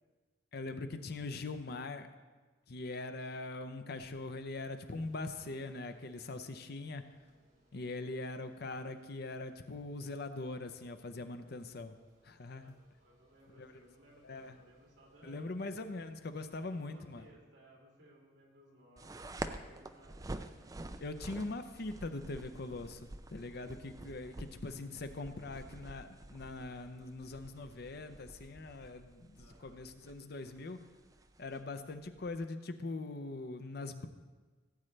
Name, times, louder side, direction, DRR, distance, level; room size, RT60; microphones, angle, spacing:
voice 1, 0.5-2.1 2.7-7.0 7.7-12.0 12.2-12.7 13.6-13.7 14.2-14.6 15.2-17.2 21.0-30.8 31.4-34.1, left 2 dB, 55° left, 9 dB, 0.7 m, -42 dB
sound 1, 3.9-17.3, right 1 dB, 40° right, 3.4 m, -70 dB
voice 2, 12.4-15.6 16.7-20.4 23.6-23.7 29.4-29.8, right 1 dB, 70° right, -2 dB, 3.0 m, -62 dB
sound 2, 19.0-32.4, right 2 dB, 20° right, 0.4 m, -48 dB
16.5 x 8.7 x 3.3 m, 1.3 s
head